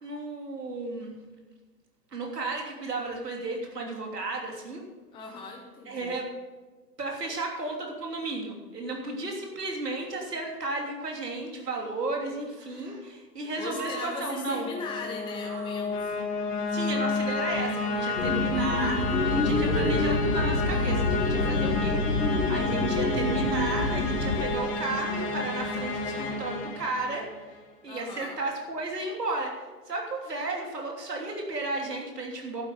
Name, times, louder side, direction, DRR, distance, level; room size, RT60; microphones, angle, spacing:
voice 1, 0.0-1.2 2.1-4.8 5.8-6.2 7.0-14.7 16.7-27.3 27.8-29.5 29.9-32.6, right 2 dB, 75° right, 0 dB, 3.3 m, -34 dB
voice 2, 5.1-6.2 13.6-16.2 27.9-28.4, left 4 dB, 10° left, 1 dB, 0.9 m, -38 dB
sound 1, 12.5-13.1 13.6-22.2, right 5 dB, 40° right, 3.1 m, -47 dB
sound 2, 14.5-27.5, left 3 dB, 25° left, 1.8 m, -31 dB
sound 3, 18.2-24.4, left 2 dB, 65° left, 2.3 m, -27 dB
11.5 x 9.2 x 6.5 m, 1.3 s
figure-of-eight pair, 120°, 49 cm